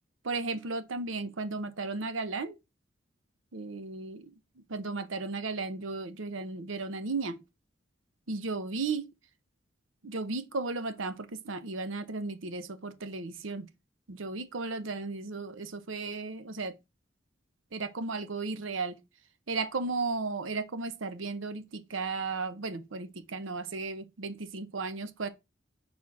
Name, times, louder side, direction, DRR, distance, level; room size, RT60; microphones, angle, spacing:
voice 1, 0.2-2.6 3.5-4.3 4.7-7.4 8.3-9.1 10.0-13.7 14.1-16.7 17.7-19.0 19.5-25.3, right 3 dB, 90° right, 0.8 m, -35 dB
6.2 x 4.3 x 4.1 m
head